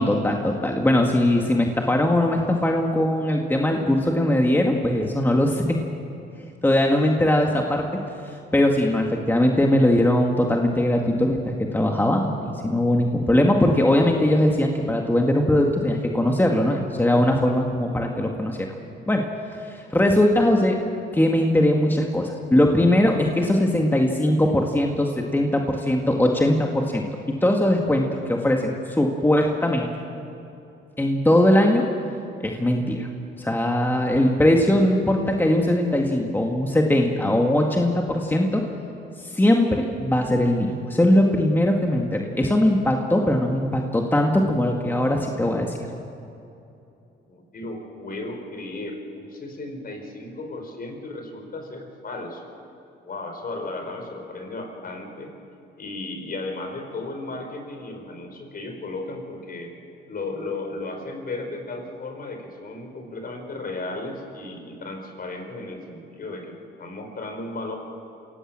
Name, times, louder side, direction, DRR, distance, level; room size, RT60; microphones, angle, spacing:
voice 1, 0.0-5.6 6.6-7.8 8.5-11.4 11.7-18.7 19.1-19.2 19.5-20.8 21.1-29.9 31.0-31.8 32.4-33.1 33.4-38.6 39.2-45.7, left 1 dB, 10° left, 1 dB, 2.0 m, -20 dB
voice 2, 47.3-52.4 53.0-55.3 55.8-59.7 60.1-67.8, left 2 dB, 50° left, 4 dB, 4.9 m, -35 dB
26.5 x 17.0 x 7.6 m, 2.8 s
cardioid pair, 90°, 20 cm